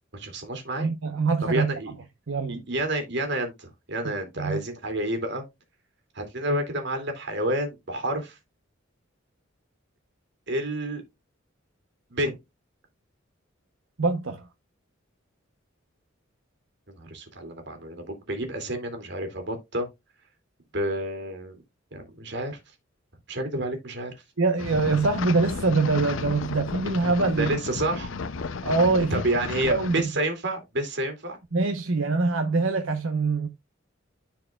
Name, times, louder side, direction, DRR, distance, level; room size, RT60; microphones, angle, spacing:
voice 1, 0.1-0.9 1.5-1.9 2.5-5.4 6.2-8.4 10.5-11.0 12.1-12.4 16.9-19.9 20.7-21.6 21.9-22.6 23.3-24.1 27.4-28.1 29.1-31.4, right 1 dB, 60° right, 2.6 m, -29 dB
voice 2, 0.8-1.9 2.3-2.6 4.0-4.6 14.0-14.5 24.4-27.6 28.6-29.2 29.7-30.0 31.5-33.5, right 3 dB, 80° right, 1.0 m, -24 dB
sound 1, 24.6-30.0, left 4 dB, 80° left, 0.6 m, -33 dB
14.0 x 4.7 x 2.4 m
head